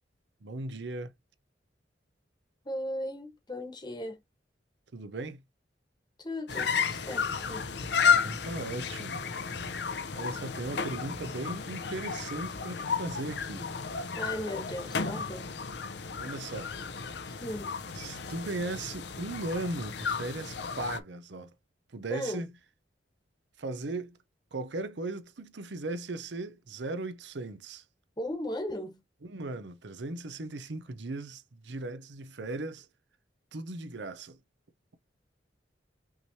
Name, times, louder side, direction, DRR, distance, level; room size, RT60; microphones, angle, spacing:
voice 1, 0.4-1.1 4.9-5.4 8.2-9.2 10.2-13.7 16.2-16.7 17.9-21.5 21.9-22.5 23.6-24.2 24.5-27.8 29.2-32.9 33.5-34.4, right 2 dB, 70° right, 0.7 m, -37 dB
voice 2, 2.6-4.2 6.2-7.7 14.2-15.6 17.4-17.7 22.1-22.4 28.2-29.0, left 1 dB, 25° left, 1.2 m, -37 dB
sound 1, 6.5-21.0, left 6 dB, 65° left, 0.7 m, -32 dB
5.6 x 3.2 x 2.8 m
head